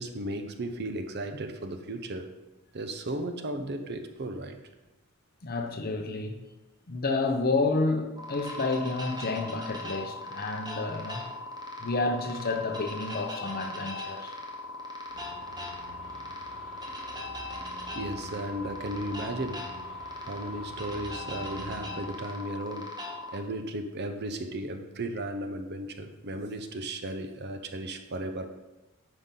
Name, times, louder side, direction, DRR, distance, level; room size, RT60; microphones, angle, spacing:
voice 1, 0.0-2.3 2.7-4.6 17.9-19.6 20.2-22.9 23.3-28.5, right 1 dB, 50° right, 7 dB, 0.7 m, -35 dB
voice 2, 5.4-6.4 6.9-11.2 11.8-14.4, left 3 dB, 45° left, 4 dB, 0.8 m, -30 dB
sound 1, 8.2-23.4, left 2 dB, 20° right, 1.1 m, -39 dB
sound 2, 15.1-22.0, equal, 5° left, 3.0 m, -48 dB
9.5 x 5.5 x 3.8 m, 1.0 s
head